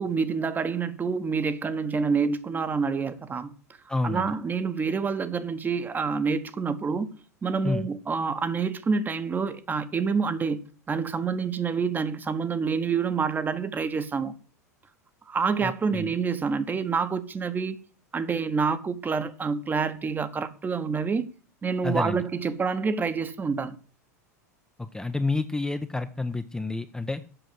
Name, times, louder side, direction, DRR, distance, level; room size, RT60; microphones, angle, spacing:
voice 1, 0.0-3.5 4.0-7.1 7.4-14.3 15.3-17.8 18.1-21.2 21.6-23.8, right 5 dB, 20° right, 1.1 m, -27 dB
voice 2, 3.9-4.3 7.6-7.9 15.6-16.1 21.8-22.2 24.8-27.2, left 3 dB, 10° left, 0.7 m, -29 dB
7.9 x 6.3 x 7.9 m
figure-of-eight pair, 85°, 9 cm